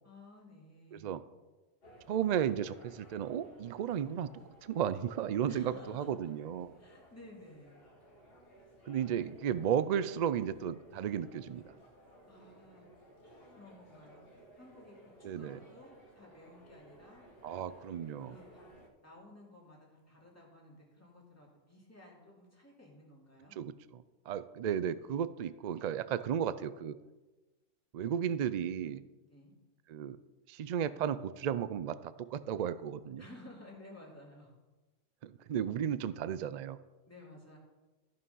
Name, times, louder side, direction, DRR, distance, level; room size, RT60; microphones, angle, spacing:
voice 1, 0.0-1.2 5.5-6.2 6.8-7.8 12.3-12.9 13.6-14.2 14.6-17.2 18.3-18.7 19.0-23.5 26.3-26.6 29.2-29.5 33.2-34.5 37.1-37.6, left 1 dB, 10° left, -4 dB, 2.7 m, -55 dB
voice 2, 0.9-1.2 2.1-4.3 4.6-6.7 8.9-11.6 15.2-15.6 17.4-18.3 23.6-23.7 24.3-27.0 27.9-29.0 29.9-30.2 30.5-33.2 35.2-36.8, right 9 dB, 70° right, 15 dB, 0.4 m, -34 dB
sound 1, 1.8-18.9, right 1 dB, 50° left, 1.9 m, -58 dB
14.0 x 5.7 x 5.5 m, 1.2 s
omnidirectional pair, 1.2 m